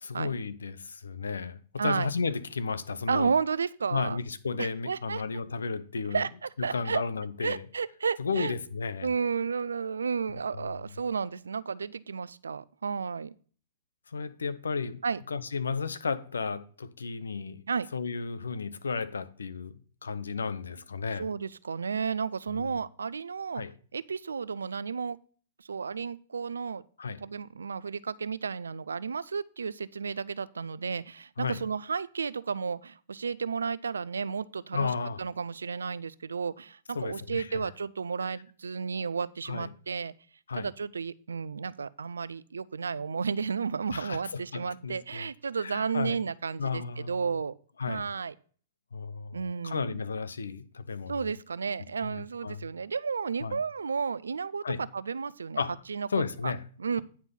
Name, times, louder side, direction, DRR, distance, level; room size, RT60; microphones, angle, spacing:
voice 1, 0.0-3.3 3.9-6.2 6.6-7.6 8.2-9.1 10.3-10.7 14.1-15.0 15.3-17.6 17.9-21.3 22.6-22.7 23.5-23.7 27.0-27.2 31.4-31.6 34.7-35.2 36.9-37.7 39.5-39.7 40.5-40.7 43.9-45.3 45.6-46.2 46.6-47.3 47.8-48.1 48.9-49.4 49.6-51.1 52.0-52.7 53.4-53.6 54.6-54.8 55.6-55.8 56.1-56.6, left 5 dB, 80° left, 0.7 m, -33 dB
voice 2, 1.8-2.1 3.1-4.2 4.6-5.2 6.1-7.0 7.4-8.5 9.0-13.3 15.0-15.2 17.7-17.9 21.2-23.6 23.9-25.2 25.7-26.8 27.2-34.9 35.2-40.1 40.5-47.5 47.9-48.3 49.3-50.0 51.1-55.6 55.9-56.1 56.4-56.5 56.8-57.0, right 5 dB, 80° right, 0.4 m, -32 dB
9.5 x 4.4 x 5.4 m
figure-of-eight pair, 110°, 0 cm